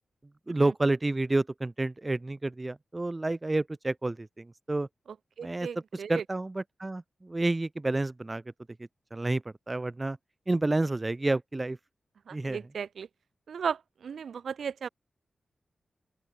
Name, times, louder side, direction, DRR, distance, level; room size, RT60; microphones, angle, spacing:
voice 1, 0.5-4.9 5.4-5.7 6.1-8.4 9.1-10.2 10.5-11.8 12.3-12.6, right 2 dB, 25° right, 4.6 m, -29 dB
voice 2, 5.4-6.2 12.3-13.1 13.5-14.9, right 7 dB, 80° right, 7.1 m, -35 dB
open air
cardioid pair, 60°, 0 cm